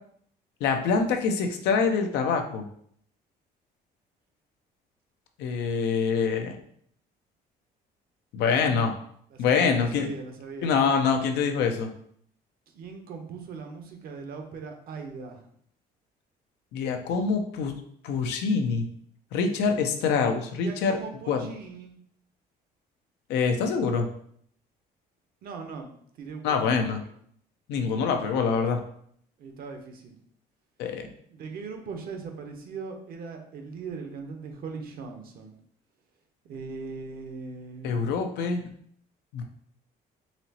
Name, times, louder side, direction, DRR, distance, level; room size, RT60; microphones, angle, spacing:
voice 1, 0.6-2.7 5.4-6.6 8.3-8.9 9.4-10.1 10.6-11.9 16.7-17.7 18.0-18.9 19.3-21.0 21.3-21.4 23.3-24.1 26.4-27.0 27.7-28.8 30.8-31.1 37.8-38.7 39.3-39.4, left 5 dB, 85° left, 5 dB, 0.6 m, -25 dB
voice 2, 9.3-10.7 12.7-15.5 20.6-22.0 25.4-25.9 26.1-27.1 29.4-30.2 31.3-35.6 36.5-38.0, right 4 dB, 60° right, 4 dB, 0.8 m, -40 dB
4.2 x 3.0 x 2.8 m, 0.64 s
cardioid pair, 110°, 17 cm